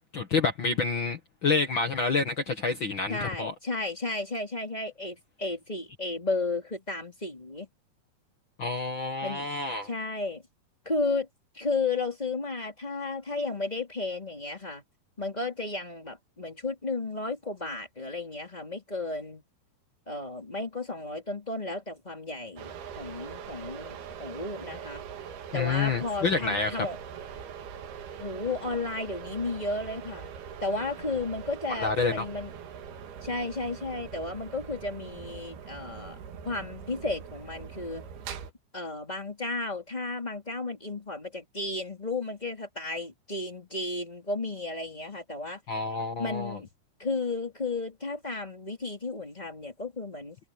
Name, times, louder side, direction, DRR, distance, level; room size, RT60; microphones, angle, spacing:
voice 1, 0.1-3.5 8.6-9.9 25.5-26.8 31.8-32.3 45.7-46.6, left 4 dB, 65° left, 1.2 m, -28 dB
voice 2, 3.1-7.7 9.2-9.5 9.8-10.4 10.8-11.3 11.5-14.8 15.2-19.4 20.1-25.0 25.5-27.0 28.2-30.3 30.6-32.5 33.2-36.2 36.4-38.0 38.7-45.6 46.2-46.7 47.0-50.4, left 3 dB, 10° left, 2.5 m, -33 dB
sound 1, 22.6-38.5, right 7 dB, 75° right, 3.9 m, -42 dB
omnidirectional pair, 4.7 m